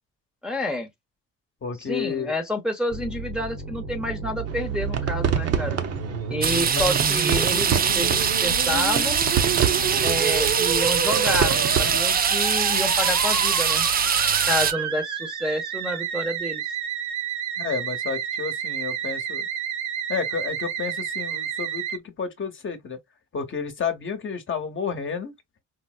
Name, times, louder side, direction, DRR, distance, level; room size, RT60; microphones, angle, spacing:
voice 1, 0.4-0.9 1.8-5.8 6.3-9.2 10.0-13.9 14.4-16.6, left 1 dB, 5° right, 0.8 m, -29 dB
voice 2, 1.6-2.3 6.5-6.8 17.6-19.5 20.1-23.0 23.3-25.3, left 6 dB, 40° left, 0.9 m, -31 dB
Musical instrument, 2.9-22.0, right 7 dB, 70° right, 1.1 m, -30 dB
sound 1, 4.5-12.0, right 7 dB, 55° right, 0.7 m, -28 dB
sound 2, 6.4-14.7, right 7 dB, 30° right, 0.4 m, -23 dB
4.4 x 2.0 x 2.4 m
cardioid pair, 90°, 30 cm